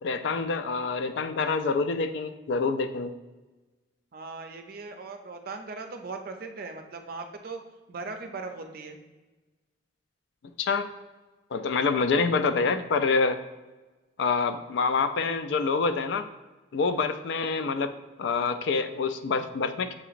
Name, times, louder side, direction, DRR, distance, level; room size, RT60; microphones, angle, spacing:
voice 1, 0.0-3.1 10.6-10.9 11.5-13.4 14.2-16.3 16.7-17.9 18.2-19.9, left 4 dB, 70° left, 10 dB, 0.3 m, -26 dB
voice 2, 4.1-7.6 7.9-9.0, right 3 dB, 50° right, 5 dB, 0.5 m, -39 dB
7.2 x 2.9 x 2.5 m, 1.2 s
head